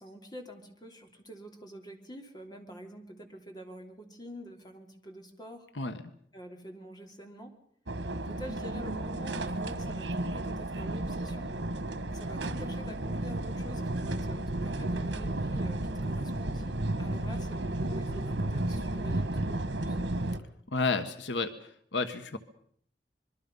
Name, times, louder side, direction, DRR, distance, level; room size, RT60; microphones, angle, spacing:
voice 1, 0.0-5.7 6.3-7.5 8.2-11.6 12.1-20.0, equal, 25° left, 3 dB, 3.1 m, -47 dB
sound 1, 7.9-20.4, right 1 dB, 85° right, 1.6 m, -33 dB
voice 2, 20.7-21.5 21.9-22.4, left 3 dB, 85° left, 9 dB, 1.4 m, -30 dB
25.5 x 23.0 x 5.5 m, 0.63 s
head